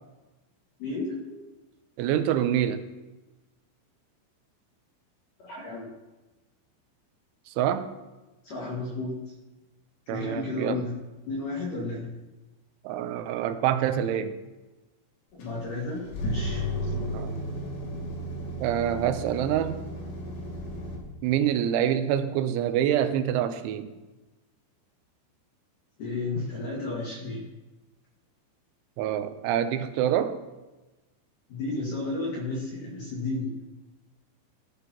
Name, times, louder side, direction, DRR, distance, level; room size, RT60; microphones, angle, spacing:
voice 1, 0.8-1.4 5.4-5.9 8.4-9.1 10.1-10.9 11.3-12.2 15.3-16.7 26.0-27.4 31.5-33.6, left 2 dB, 55° left, -4 dB, 2.8 m, -32 dB
voice 2, 2.0-2.8 7.5-7.9 10.1-10.8 12.8-14.4 16.9-17.4 18.6-19.8 21.2-23.9 29.0-30.4, right 10 dB, 85° right, 9 dB, 3.1 m, -26 dB
sound 1, 15.4-21.0, equal, 75° left, 4.8 m, -33 dB
15.0 x 13.0 x 2.9 m, 1.1 s
omnidirectional pair, 5.6 m